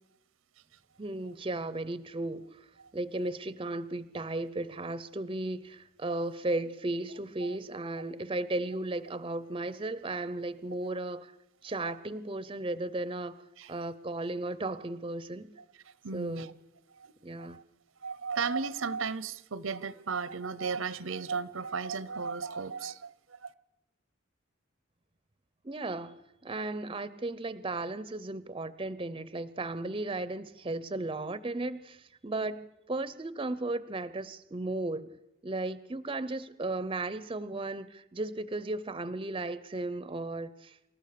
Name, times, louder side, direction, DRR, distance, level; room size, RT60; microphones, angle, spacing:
voice 1, 1.0-2.7 2.9-11.3 11.6-15.5 16.1-16.5 17.2-17.6 25.6-35.2 35.4-40.8, right 2 dB, 25° right, 0.6 m, -35 dB
voice 2, 16.0-16.5 17.0-17.1 17.4-17.6 18.0-23.5, right 5 dB, 85° right, 0.8 m, -35 dB
28.0 x 14.0 x 6.8 m
head